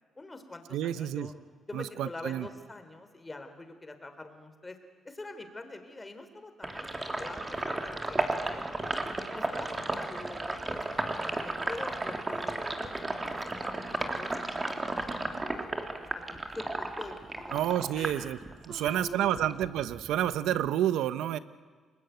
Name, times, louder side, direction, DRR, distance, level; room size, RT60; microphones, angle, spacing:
voice 1, 0.2-1.3 1.7-4.8 5.0-8.7 9.3-10.9 11.4-17.6 17.9-18.3 18.7-19.6, left 2 dB, 20° left, 8 dB, 3.8 m, -45 dB
voice 2, 0.7-1.3 1.7-2.5 17.5-18.4 18.7-21.4, right 11 dB, 85° right, 14 dB, 1.1 m, -29 dB
Sink (filling or washing), 6.6-18.9 19.2-20.7, right 2 dB, 20° right, 3.2 m, -34 dB
30.0 x 21.0 x 9.4 m, 1.6 s
cardioid pair, 90°, 0 cm